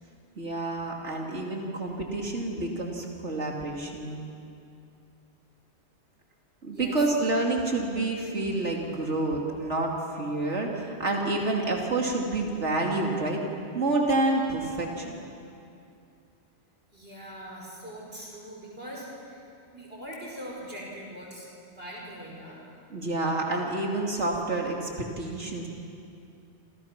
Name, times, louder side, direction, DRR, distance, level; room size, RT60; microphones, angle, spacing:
voice 1, 0.4-4.2 6.6-13.4 13.7-15.1 22.9-25.7, right 2 dB, 85° right, -1 dB, 3.0 m, -28 dB
voice 2, 16.9-19.4 19.7-22.8, equal, 60° right, -3 dB, 5.6 m, -42 dB
28.5 x 28.0 x 5.9 m, 2.6 s
omnidirectional pair, 1.2 m